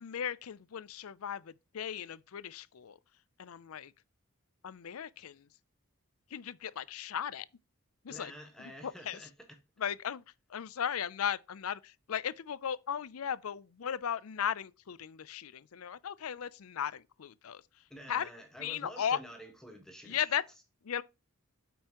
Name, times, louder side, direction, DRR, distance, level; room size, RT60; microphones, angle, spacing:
voice 1, 0.0-3.0 3.4-3.9 4.6-5.5 6.3-7.5 8.0-8.3 8.8-9.2 9.8-10.2 10.5-17.6 18.1-18.3 18.6-19.2 20.1-20.4 20.8-21.0, left 8 dB, 85° left, 0.5 m, -36 dB
voice 2, 8.1-9.3 17.9-20.4, equal, 5° left, 1.4 m, -49 dB
8.8 x 5.4 x 3.0 m
head